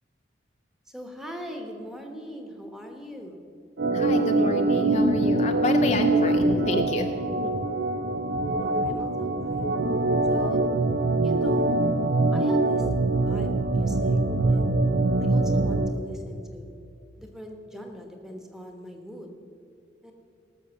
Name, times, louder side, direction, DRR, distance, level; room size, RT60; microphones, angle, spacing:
voice 1, 0.9-3.4 8.6-9.8 10.3-10.6 11.2-11.8 12.3-12.9 13.2-14.2 14.5-14.7 15.2-16.7 17.2-19.3 20.0-20.1, equal, 5° right, 3 dB, 1.2 m, -41 dB
Organ, 3.8-15.9, right 2 dB, 65° right, 0.6 m, -23 dB
voice 2, 3.9-7.1 7.4-7.5, left 2 dB, 35° left, 5 dB, 0.6 m, -29 dB
18.0 x 6.6 x 7.1 m, 2.6 s
head